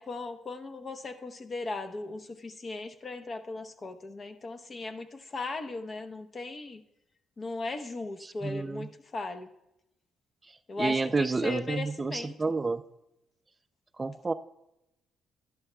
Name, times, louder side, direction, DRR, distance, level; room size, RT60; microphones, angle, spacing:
voice 1, 0.0-6.8 7.4-9.5 10.7-12.3, left 3 dB, 40° left, 9 dB, 0.8 m, -37 dB
voice 2, 8.2-8.9 10.8-12.8 14.0-14.3, right 3 dB, 25° right, 12 dB, 0.4 m, -30 dB
12.0 x 11.0 x 2.2 m, 0.89 s
cardioid pair, 90°, 0 cm